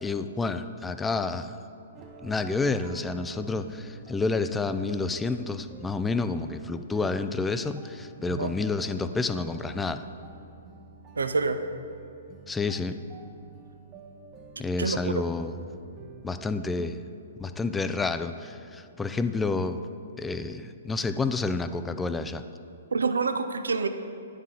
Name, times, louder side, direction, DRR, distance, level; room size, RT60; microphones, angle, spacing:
voice 1, 0.0-1.5 2.2-10.0 12.5-13.0 14.6-15.6 16.2-17.0 17.4-19.8 20.2-22.4, left 3 dB, 10° left, 10 dB, 0.3 m, -29 dB
sound 1, 1.9-16.6, right 4 dB, 25° right, 0.8 m, -49 dB
voice 2, 11.2-11.6 14.8-15.2 22.9-23.9, right 4 dB, 80° right, 9 dB, 0.4 m, -27 dB
9.4 x 5.5 x 3.8 m, 2.4 s
figure-of-eight pair, 125°, 0 cm